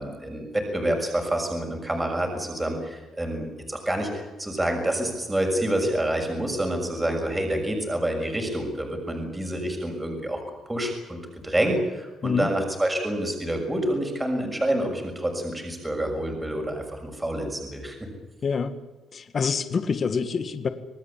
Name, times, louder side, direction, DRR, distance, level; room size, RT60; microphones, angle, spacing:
voice 1, 0.0-18.0, right 1 dB, 10° right, 3 dB, 6.5 m, -28 dB
voice 2, 18.4-18.7 19.1-20.7, left 5 dB, 40° left, 9 dB, 1.9 m, -26 dB
27.0 x 19.0 x 8.6 m, 1.1 s
cardioid pair, 120°, 0 cm